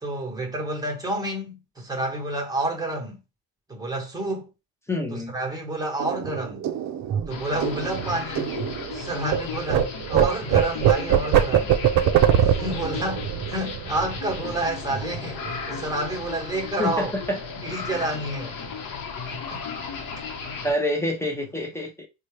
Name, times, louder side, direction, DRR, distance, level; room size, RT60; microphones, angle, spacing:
voice 1, 0.0-3.1 3.7-4.5 5.1-6.6 7.3-8.5 8.9-11.7 12.4-15.4 15.7-17.1 17.6-18.6 19.3-19.6, right 1 dB, 10° right, 1.1 m, -29 dB
voice 2, 4.9-5.4 16.8-17.4 20.6-22.1, left 1 dB, 5° left, 0.6 m, -27 dB
sound 1, 6.0-9.4 9.7-14.7 14.9-15.2 15.5-16.0, right 9 dB, 45° right, 0.5 m, -23 dB
sound 2, 7.3-20.7, left 5 dB, 55° left, 0.9 m, -35 dB
4.2 x 2.3 x 3.2 m
cardioid pair, 130°, 39 cm